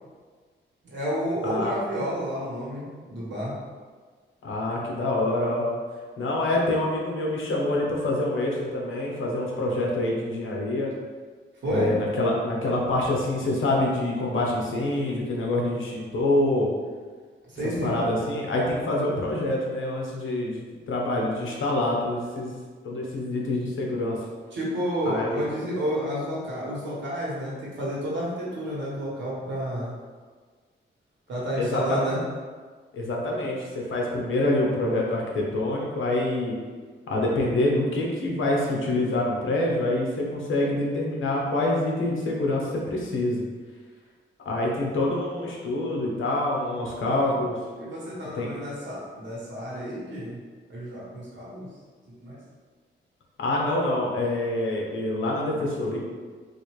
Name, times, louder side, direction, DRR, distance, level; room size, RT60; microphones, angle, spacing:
voice 1, 0.8-3.5 11.6-11.9 17.5-18.0 24.5-29.9 31.3-32.2 47.1-47.4 47.8-50.4 50.7-51.7 52.1-52.4, equal, 65° right, -6 dB, 1.3 m, -30 dB
voice 2, 1.4-1.7 4.4-5.7 6.2-10.9 11.7-16.7 17.6-22.5 22.8-24.2 25.0-25.4 31.6-32.0 32.9-36.6 37.1-43.4 44.4-47.6 48.3-48.5 53.4-56.0, left 1 dB, 75° left, -2 dB, 0.9 m, -26 dB
4.0 x 2.6 x 3.2 m, 1.5 s
wide cardioid pair, 165°, 20 cm